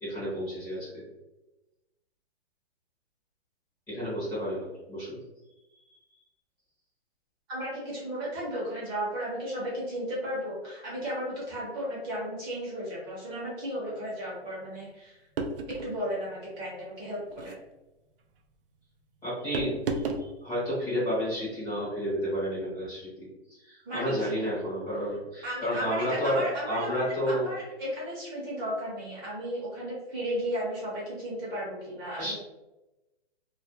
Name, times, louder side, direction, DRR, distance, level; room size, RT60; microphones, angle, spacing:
voice 1, 0.0-1.0 3.9-5.2 19.2-20.0 20.4-23.3 23.6-27.5 32.2-32.3, equal, 10° left, -9 dB, 0.7 m, -31 dB
voice 2, 7.5-15.2 15.7-17.6 23.9-24.4 25.4-32.3, equal, 25° right, -6 dB, 0.7 m, -34 dB
sound 1, 15.4-16.0 17.3-17.6 19.5-20.3, right 3 dB, 60° right, 0.4 m, -32 dB
2.3 x 2.2 x 2.7 m, 1.0 s
hypercardioid pair, 150°, 32 cm